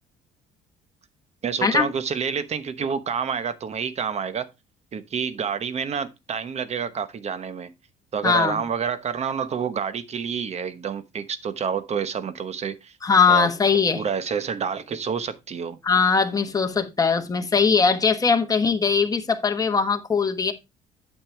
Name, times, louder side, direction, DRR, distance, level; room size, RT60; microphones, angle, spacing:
voice 1, 1.4-4.5 4.9-7.7 8.1-12.9 13.3-13.5 13.9-15.8, right 6 dB, 40° right, 1.0 m, -28 dB
voice 2, 8.2-8.6 13.0-14.0 15.8-20.5, left 5 dB, 20° left, 1.3 m, -20 dB
8.9 x 6.8 x 3.3 m
cardioid pair, 110°, 17 cm